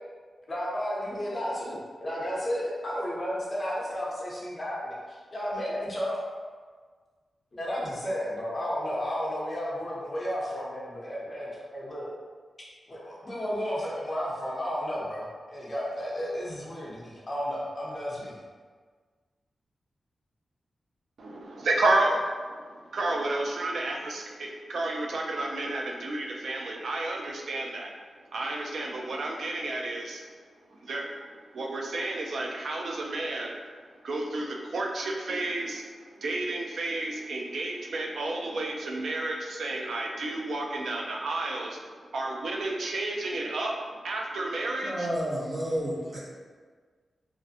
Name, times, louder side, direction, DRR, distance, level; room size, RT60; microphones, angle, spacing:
voice 1, 0.5-6.2 7.5-12.1 12.9-18.4, equal, 30° left, -6 dB, 0.6 m, -33 dB
voice 2, 21.2-22.2 22.9-27.9 28.3-30.2 30.7-31.1 31.5-33.6 34.0-35.8 36.2-45.1, right 2 dB, 70° right, 0 dB, 0.3 m, -31 dB
voice 3, 44.8-46.2, equal, 35° right, -6 dB, 0.6 m, -30 dB
2.4 x 2.0 x 2.7 m, 1.6 s
wide cardioid pair, 160°, 0 cm